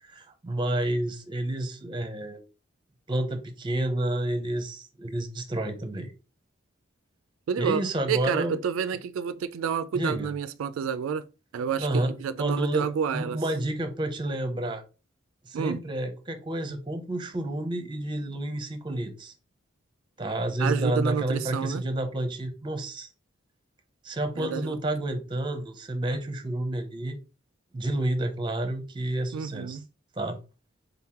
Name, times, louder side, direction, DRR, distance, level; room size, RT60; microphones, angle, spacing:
voice 1, 0.0-2.4 3.1-6.1 7.6-8.6 9.9-10.3 11.8-12.1 12.4-14.8 15.4-19.3 20.2-23.1 24.0-27.2 27.7-29.8 30.1-30.4, right 1 dB, 25° right, 0.6 m, -30 dB
voice 2, 7.5-11.2 11.5-13.4 15.5-15.8 20.6-21.8 24.4-24.8 29.3-29.8, right 7 dB, 85° right, 0.3 m, -29 dB
3.8 x 3.6 x 2.9 m
head